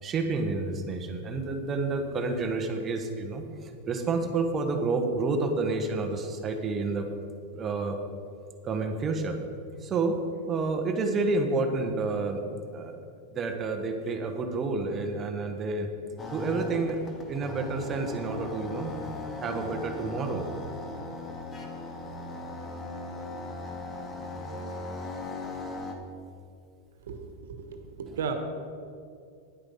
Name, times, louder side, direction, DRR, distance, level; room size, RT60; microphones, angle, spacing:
voice 1, 0.0-7.1 7.5-8.0 8.6-9.4 9.8-10.2 10.5-12.4 12.7-12.9 13.3-15.9 16.3-17.0 17.3-18.9 19.4-20.5, right 3 dB, 25° right, 5 dB, 1.3 m, -29 dB
sound 1, 16.2-25.9, left 2 dB, 25° left, 1.4 m, -38 dB
voice 2, 27.0-28.3, right 6 dB, 85° right, 6 dB, 1.4 m, -35 dB
10.0 x 8.7 x 5.7 m, 2.4 s
supercardioid pair, 130°, 0 cm